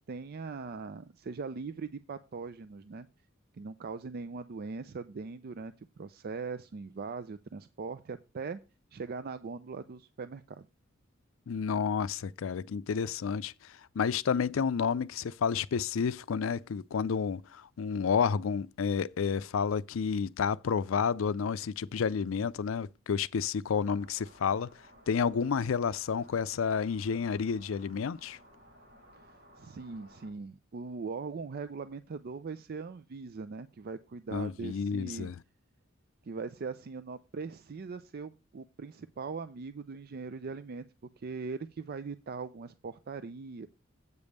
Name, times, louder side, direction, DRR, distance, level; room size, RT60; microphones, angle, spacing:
voice 1, 0.1-3.1 3.5-8.6 8.9-10.7 29.1-35.3 36.2-40.9 41.2-43.7, right 4 dB, 50° right, 0.4 m, -40 dB
voice 2, 11.5-24.7 25.1-28.4 34.3-35.4, left 6 dB, 80° left, 0.4 m, -30 dB
sound 1, 23.9-30.3, equal, 75° right, 5.8 m, -58 dB
8.2 x 5.2 x 6.6 m
head